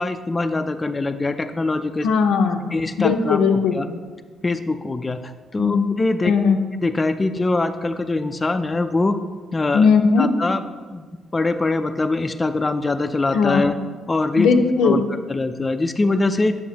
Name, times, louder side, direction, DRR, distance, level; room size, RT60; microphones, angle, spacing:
voice 1, 0.0-2.1 2.7-3.4 3.7-3.9 4.4-6.3 6.8-9.2 9.5-9.9 10.2-10.6 10.9-11.0 11.3-13.7 14.1-14.5 14.8-16.6, left 2 dB, 25° left, 8 dB, 0.3 m, -23 dB
voice 2, 2.0-2.7 3.0-3.8 5.6-5.9 6.2-6.6 9.7-10.3 13.3-13.7 14.4-15.0, left 5 dB, 85° left, 4 dB, 0.5 m, -18 dB
7.2 x 6.3 x 2.8 m, 1.5 s
cardioid pair, 90°, 0 cm